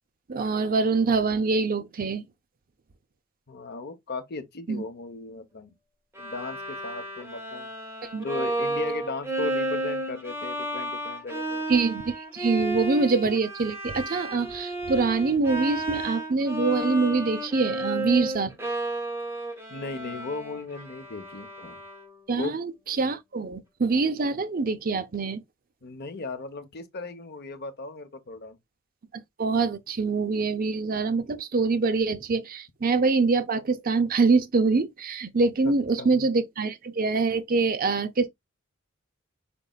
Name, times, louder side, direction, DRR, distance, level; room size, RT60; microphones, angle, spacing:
voice 1, 0.3-2.2 4.7-4.8 8.1-8.3 11.7-18.5 22.3-25.4 29.4-38.3, right 4 dB, 45° right, 0.6 m, -25 dB
voice 2, 3.5-5.7 6.2-7.7 8.2-11.6 12.5-12.7 19.7-21.8 22.4-22.6 25.8-28.6 35.6-36.3, left 3 dB, 50° left, 0.9 m, -37 dB
Bowed string instrument, 6.2-22.2, right 1 dB, 10° right, 1.4 m, -32 dB
5.3 x 4.2 x 2.3 m
head